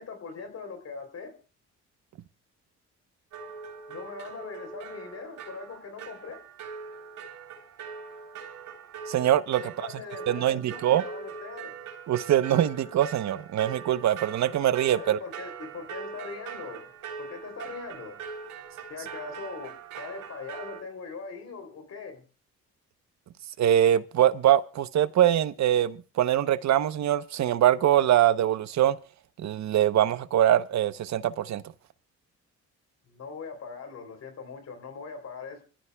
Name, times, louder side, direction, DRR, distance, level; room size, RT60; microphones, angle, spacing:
voice 1, 0.0-1.3 3.9-6.4 9.6-11.7 15.0-16.9 17.2-18.2 18.9-22.2 33.0-35.6, left 4 dB, 60° left, 3.6 m, -41 dB
sound 1, 3.3-20.8, right 6 dB, 85° right, 3.7 m, -42 dB
voice 2, 9.1-9.6 10.3-11.0 12.1-15.2 23.6-29.0 29.4-31.6, right 11 dB, 65° right, 0.9 m, -23 dB
27.0 x 15.0 x 2.3 m
cardioid pair, 90°, 30 cm